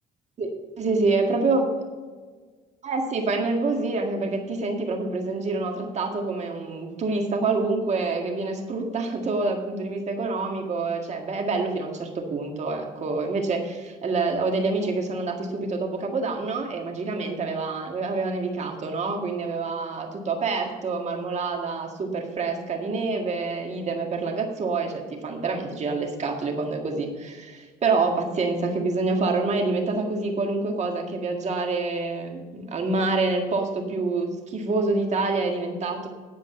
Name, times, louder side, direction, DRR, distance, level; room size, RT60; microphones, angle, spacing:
voice 1, 0.4-1.7 2.8-36.1, right 3 dB, 40° right, 3 dB, 1.8 m, -27 dB
10.0 x 5.1 x 7.7 m, 1.5 s
cardioid pair, 110°, 17 cm